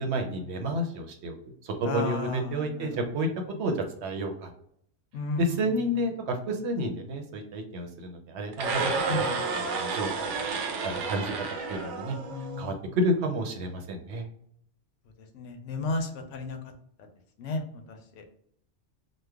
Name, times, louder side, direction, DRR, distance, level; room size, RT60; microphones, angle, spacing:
voice 1, 0.0-1.3 1.6-3.3 3.6-4.5 5.4-10.3 10.8-11.3 11.7-12.2 12.6-14.3, right 1 dB, 70° right, 4 dB, 0.9 m, -30 dB
voice 2, 1.9-3.0 5.1-5.6 9.1-9.4 12.3-12.7 15.3-16.6 17.4-17.6 18.2-18.3, left 3 dB, 85° left, 4 dB, 1.0 m, -33 dB
sound 1, 8.5-12.7, right 4 dB, 90° right, 1.0 m, -31 dB
3.1 x 2.1 x 3.4 m, 0.67 s
omnidirectional pair, 1.2 m